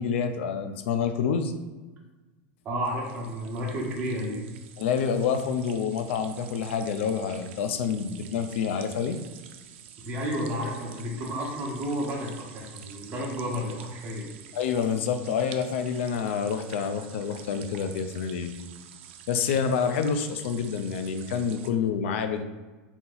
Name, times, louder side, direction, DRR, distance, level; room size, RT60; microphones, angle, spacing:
voice 1, 0.0-1.5 4.8-9.2 14.5-18.5 19.3-22.4, left 6 dB, 80° left, 8 dB, 0.5 m, -28 dB
voice 2, 2.6-4.4 10.0-14.3, equal, 25° right, -2 dB, 1.0 m, -31 dB
sound 1, 2.9-21.7, right 9 dB, 80° right, 0.4 m, -48 dB
4.1 x 2.9 x 3.9 m, 1.2 s
supercardioid pair, 170°, 6 cm